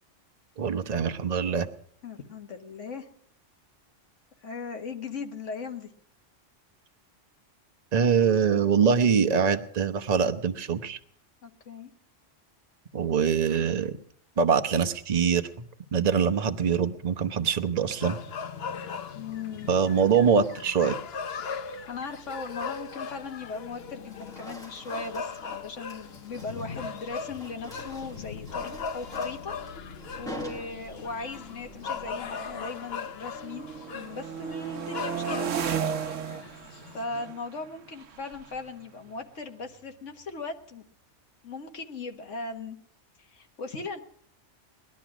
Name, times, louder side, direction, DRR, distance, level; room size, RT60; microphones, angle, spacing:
voice 1, 0.6-1.7 7.9-11.0 12.9-13.9 14.4-15.6 15.9-18.2 19.7-20.9, right 6 dB, 35° right, 8 dB, 0.9 m, -24 dB
voice 2, 2.0-3.1 4.4-5.9 11.4-11.9 19.1-19.7 21.4-29.5 30.2-35.5 36.9-40.8 41.4-42.8 43.2-44.0, left 4 dB, 80° left, 5 dB, 1.7 m, -38 dB
sound 1, 18.0-37.0, left 6 dB, 60° left, 1.0 m, -39 dB
sound 2, 18.1-18.4 19.5-21.1 21.5-21.8 22.3-23.7 24.0-31.3, right 1 dB, 5° left, 1.2 m, -47 dB
sound 3, 27.6-27.7 27.9-28.3 29.0-32.9 33.3-39.9, right 7 dB, 85° right, 1.2 m, -37 dB
20.0 x 11.5 x 6.0 m, 0.64 s
omnidirectional pair, 1.3 m